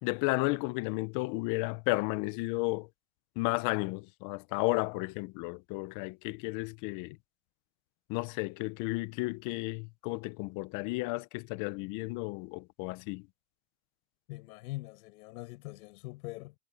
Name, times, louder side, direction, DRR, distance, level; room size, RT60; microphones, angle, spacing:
voice 1, 0.0-2.9 3.4-7.2 8.1-13.3, left 24 dB, 40° left, 0.8 m, -33 dB
voice 2, 14.3-16.5, left 21 dB, 65° left, 6.9 m, -43 dB
supercardioid pair, 140°, 47 cm